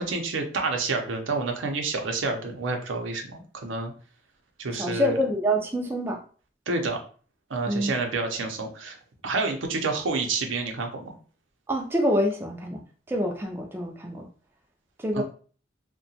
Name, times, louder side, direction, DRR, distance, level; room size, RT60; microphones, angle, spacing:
voice 1, 0.0-3.9 4.6-5.2 6.7-7.0 7.5-9.0 9.2-11.2 15.1-15.2, right 3 dB, 90° right, 3 dB, 0.6 m, -29 dB
voice 2, 4.8-6.2 7.7-7.9 11.7-12.8 13.1-14.3 15.0-15.2, equal, 10° right, 1 dB, 0.3 m, -26 dB
2.8 x 2.2 x 2.7 m, 0.41 s
head